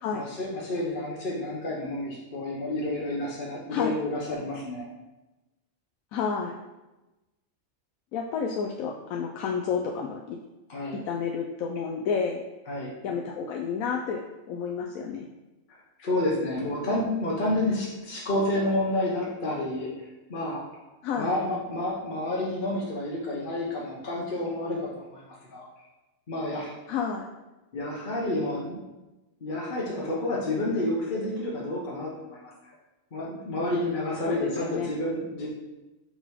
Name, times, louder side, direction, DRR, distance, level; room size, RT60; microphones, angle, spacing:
voice 1, 0.1-4.9 10.7-11.0 12.7-12.9 16.0-20.8 21.2-25.6 26.3-26.7 27.7-28.8 29.4-32.7 33.1-35.5, left 1 dB, 40° left, -4 dB, 1.1 m, -30 dB
voice 2, 6.1-6.5 8.1-10.4 10.9-12.4 13.0-15.3 21.0-21.3 26.9-27.3 34.2-34.9, left 6 dB, 90° left, 1 dB, 1.0 m, -30 dB
5.5 x 4.0 x 4.6 m, 1.1 s
omnidirectional pair, 1.4 m